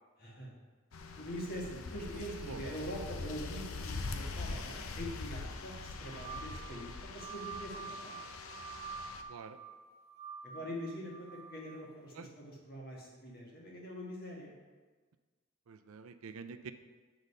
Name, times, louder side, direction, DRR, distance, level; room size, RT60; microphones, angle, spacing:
voice 1, 0.2-0.5 1.1-8.2 10.4-14.5, equal, 45° left, -3 dB, 1.6 m, -44 dB
sound 1, 0.9-9.2, left 3 dB, 80° left, 0.6 m, -43 dB
voice 2, 2.1-2.6 9.3-9.6 12.1-12.3 15.7-16.7, right 5 dB, 85° right, 10 dB, 0.5 m, -47 dB
sound 2, 5.9-11.8, right 6 dB, 30° right, 0.5 m, -47 dB
8.1 x 3.9 x 5.4 m, 1.4 s
head